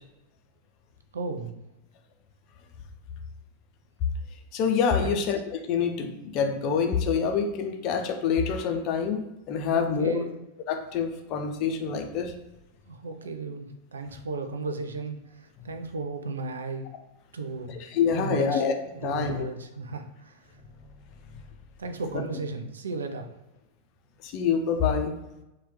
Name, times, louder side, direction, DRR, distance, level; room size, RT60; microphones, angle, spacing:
voice 1, 1.1-1.6 5.0-5.2 9.7-10.4 12.9-16.9 17.3-17.8 18.1-18.6 19.0-20.4 21.8-23.3, right 3 dB, 70° right, 6 dB, 0.3 m, -35 dB
voice 2, 4.5-10.3 10.7-12.3 17.9-18.7 19.0-19.4 22.1-22.2 24.2-25.2, left 6 dB, 40° left, 6 dB, 0.4 m, -26 dB
2.8 x 2.2 x 3.2 m, 0.95 s
figure-of-eight pair, 90°, 0 cm